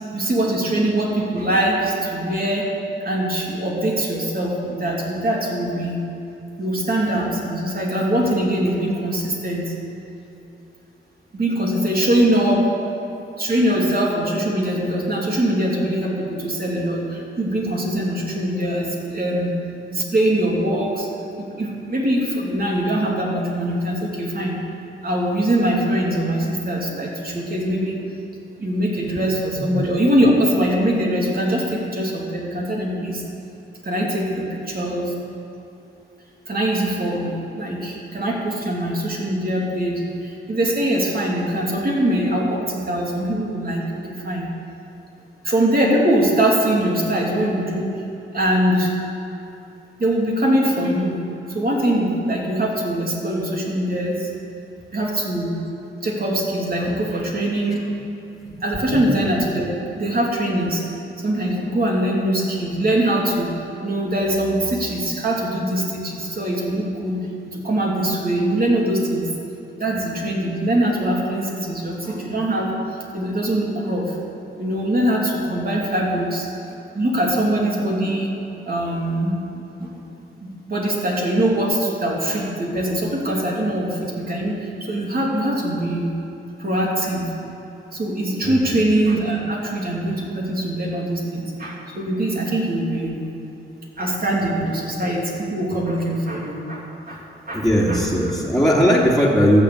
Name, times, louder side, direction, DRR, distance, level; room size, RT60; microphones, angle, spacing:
voice 1, 0.1-2.7 3.0-6.0 6.6-9.7 11.3-12.6 13.4-19.5 19.9-21.1 21.4-24.6 25.0-28.0 28.6-33.2 33.8-35.2 36.5-44.5 45.4-47.9 48.3-48.9 50.0-51.2 51.5-54.3 54.9-55.6 56.0-57.9 58.6-60.8 61.2-63.5 63.8-69.3 69.8-74.2 74.6-78.3 78.7-79.9 80.4-86.1 86.6-87.3 87.9-93.2 94.0-97.2 97.5-98.0, right 1 dB, 45° right, -3 dB, 3.3 m, -22 dB
voice 2, 88.4-88.7 97.5-99.6, equal, ahead, -6 dB, 2.9 m, -18 dB
13.5 x 7.2 x 8.1 m, 2.8 s
cardioid pair, 60°, 21 cm